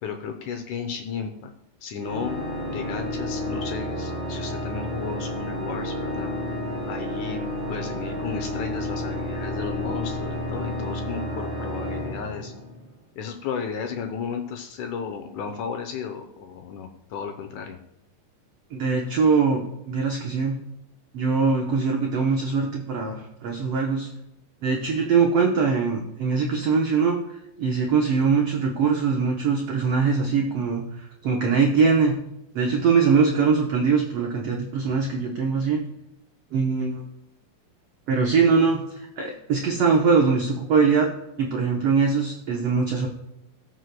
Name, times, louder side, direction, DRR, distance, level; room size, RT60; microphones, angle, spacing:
voice 1, 0.0-1.5 1.8-2.4 2.7-6.3 6.9-7.4 7.7-12.5 13.2-17.8, left 6 dB, 75° left, 5 dB, 1.9 m, -34 dB
Organ, 2.0-12.9, left 1 dB, 35° right, 3.8 m, -31 dB
voice 2, 18.7-19.6 19.9-20.6 21.1-24.1 24.6-27.2 27.6-30.8 31.2-32.2 32.5-35.8 36.5-37.0 38.1-41.1 41.4-43.1, right 5 dB, 75° right, 0 dB, 1.3 m, -22 dB
18.5 x 6.4 x 2.2 m, 0.85 s
omnidirectional pair, 4.0 m